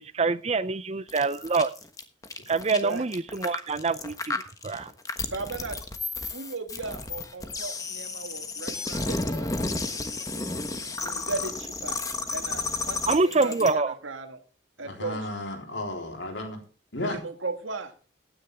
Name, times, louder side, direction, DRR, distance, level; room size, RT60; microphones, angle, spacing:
voice 1, 0.0-1.7 2.5-4.9 13.1-13.9, right 3 dB, 35° right, 16 dB, 0.5 m, -26 dB
sound 1, 1.1-13.7, left 3 dB, 15° left, 1.2 m, -32 dB
voice 2, 5.3-5.8 6.3-9.5 10.9-12.0 12.3-14.4 14.8-15.3 17.0-17.9, right 3 dB, 85° right, 7 dB, 1.8 m, -36 dB
voice 3, 14.8-16.6 16.9-17.2, left 1 dB, 70° left, 3 dB, 3.7 m, -33 dB
15.5 x 9.8 x 3.5 m, 0.37 s
head